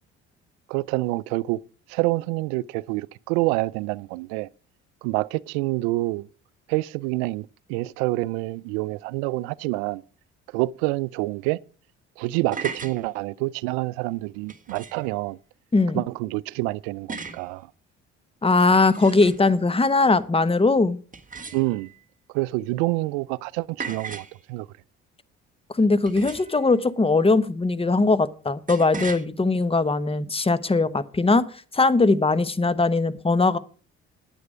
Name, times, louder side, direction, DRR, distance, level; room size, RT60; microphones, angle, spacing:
voice 1, 0.7-1.6 1.9-4.5 5.0-6.3 6.7-10.0 10.5-11.6 12.2-15.4 15.9-17.7 21.5-21.9 22.3-24.7, right 20 dB, 80° right, 0.5 m, -27 dB
sound 1, 12.5-13.0 14.5-15.1 17.1-17.5 18.5-19.5 21.1-22.0 23.8-24.4 26.1-26.6 28.7-29.2, right 4 dB, 25° right, 1.6 m, -37 dB
voice 2, 15.7-16.0 18.4-21.0 25.8-31.4 31.7-33.6, left 3 dB, 15° left, 1.0 m, -20 dB
9.5 x 9.1 x 5.0 m
hypercardioid pair, 55°, 32 cm